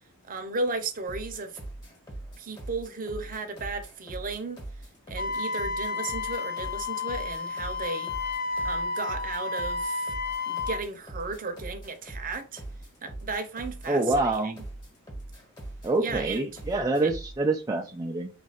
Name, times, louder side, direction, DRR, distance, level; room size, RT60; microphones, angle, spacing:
voice 1, 0.3-1.6 2.4-4.6 5.1-8.1 8.6-10.1 10.5-12.6 13.0-14.5 16.0-16.6 17.0-17.1 17.8-17.9, right 3 dB, 40° right, 0.7 m, -35 dB
sound 1, 1.1-17.4, right 1 dB, 20° left, 1.3 m, -41 dB
Wind instrument woodwind instrument, 5.2-10.8, left 4 dB, 40° left, 0.5 m, -31 dB
voice 2, 13.9-14.6 15.8-18.3, right 2 dB, 15° right, 0.4 m, -26 dB
3.9 x 2.4 x 4.1 m
head